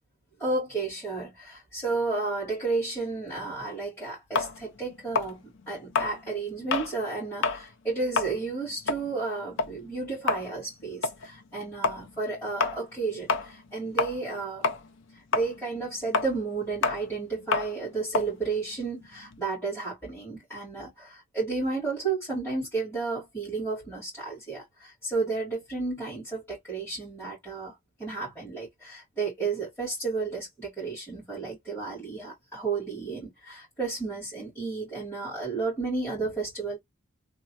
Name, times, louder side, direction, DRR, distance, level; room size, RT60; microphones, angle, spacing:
voice 1, 0.4-14.7 15.3-27.7 28.0-36.8, right 3 dB, 10° left, 1.9 m, -32 dB
sound 1, 4.3-7.0 7.3-7.7 8.0-14.4 14.6-19.4, left 4 dB, 55° left, 0.4 m, -30 dB
3.1 x 2.1 x 2.7 m
head